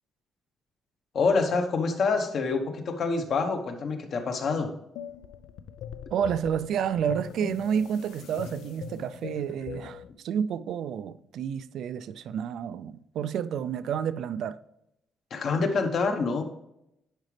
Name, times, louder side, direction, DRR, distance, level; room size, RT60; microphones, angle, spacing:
voice 1, 1.1-4.7 15.3-16.4, left 4 dB, 45° left, 1.1 m, -26 dB
sound 1, 5.0-10.1, left 8 dB, 85° left, 0.5 m, -41 dB
voice 2, 6.1-14.6, right 8 dB, 65° right, 0.4 m, -30 dB
10.5 x 4.9 x 3.3 m
cardioid pair, 165°, 0 cm